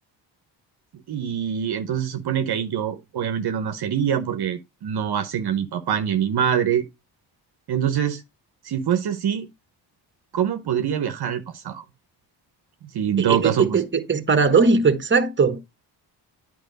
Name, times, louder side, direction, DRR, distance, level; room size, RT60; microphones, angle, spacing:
voice 1, 1.1-6.8 7.7-8.2 8.6-9.5 10.3-11.8 12.9-13.8, right 9 dB, 60° right, 0.9 m, -24 dB
voice 2, 13.2-15.6, right 5 dB, 25° right, 1.1 m, -19 dB
9.1 x 4.6 x 3.9 m
cardioid pair, 75°, 44 cm